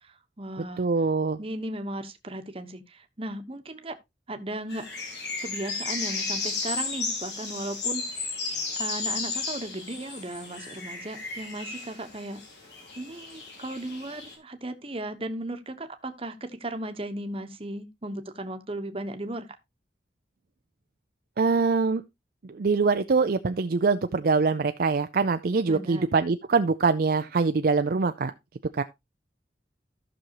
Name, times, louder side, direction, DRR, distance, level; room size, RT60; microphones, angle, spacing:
voice 1, 0.0-0.9 1.4-4.0 4.3-4.9 5.4-8.0 8.8-12.4 13.0-19.5 25.7-26.1, right 1 dB, 30° right, 1.1 m, -36 dB
voice 2, 0.8-1.4 21.4-22.0 22.5-28.3 28.7-28.8, right 4 dB, 55° right, 0.5 m, -24 dB
sound 1, 4.7-14.3, left 4 dB, 70° left, 3.6 m, -34 dB
14.5 x 6.2 x 2.9 m
head